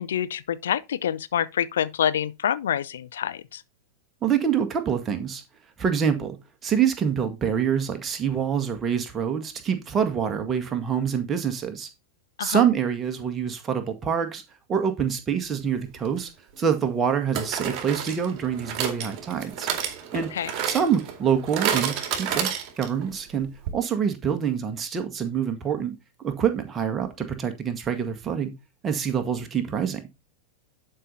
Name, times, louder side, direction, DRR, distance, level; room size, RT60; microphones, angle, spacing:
voice 1, 0.0-3.6 12.4-12.6 20.3-20.5, left 9 dB, 65° left, 0.6 m, -27 dB
voice 2, 4.2-5.4 5.8-6.4 6.6-11.9 12.4-14.4 14.7-16.3 16.6-19.7 20.1-20.3 20.7-22.5 22.8-28.5 28.8-30.0, right 7 dB, 20° right, 1.8 m, -26 dB
sound 1, 16.1-16.2 17.3-23.1 23.4-23.5 23.7-23.8, right 8 dB, 40° right, 2.2 m, -30 dB
11.0 x 5.6 x 4.1 m
figure-of-eight pair, 90°, 0 cm